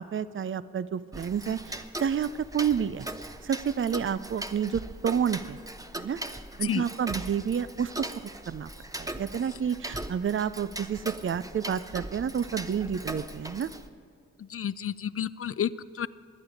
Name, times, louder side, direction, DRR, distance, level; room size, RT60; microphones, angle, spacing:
voice 1, 0.0-3.1 3.4-5.6 5.9-6.2 6.6-8.7 9.0-13.7, right 8 dB, 45° right, 16 dB, 0.5 m, -30 dB
Tick-tock, 1.1-13.9, right 1 dB, 10° right, 0.9 m, -40 dB
voice 2, 14.4-16.1, left 9 dB, 50° left, 17 dB, 0.5 m, -31 dB
22.5 x 9.0 x 5.0 m, 2.5 s
cardioid pair, 45°, 29 cm